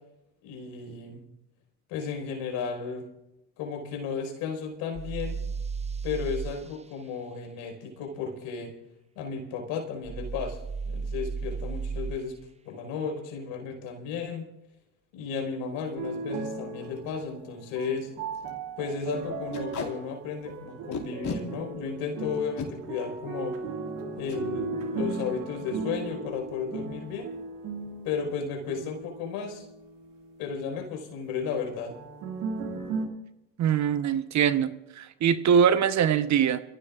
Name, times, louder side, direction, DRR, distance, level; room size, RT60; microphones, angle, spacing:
voice 1, 0.4-1.2 1.9-3.1 3.6-5.4 6.0-8.7 9.1-10.6 10.9-12.3 12.6-14.5 15.1-18.1 18.8-23.6 24.1-27.3 28.0-29.6 30.4-32.0, left 6 dB, 80° left, 3 dB, 4.9 m, -34 dB
sound 1, 4.9-6.6 10.0-12.2, right 5 dB, 20° right, 0.7 m, -34 dB
Packing tape duct tape, 15.9-16.1 16.5-16.6 16.8-17.0 17.4-17.5 17.8-18.0 18.3-18.5 19.5-19.9 20.9-21.4 22.3-22.7 24.2-24.4 24.8-24.9 25.2-25.6, left 5 dB, 50° left, 4.2 m, -34 dB
sound 2, 16.0-30.6 31.9-33.1, right 4 dB, 70° right, 2.2 m, -37 dB
voice 2, 33.6-36.6, right 8 dB, 50° right, 12 dB, 1.0 m, -23 dB
28.5 x 16.5 x 2.5 m, 0.90 s
supercardioid pair, 75°, 36 cm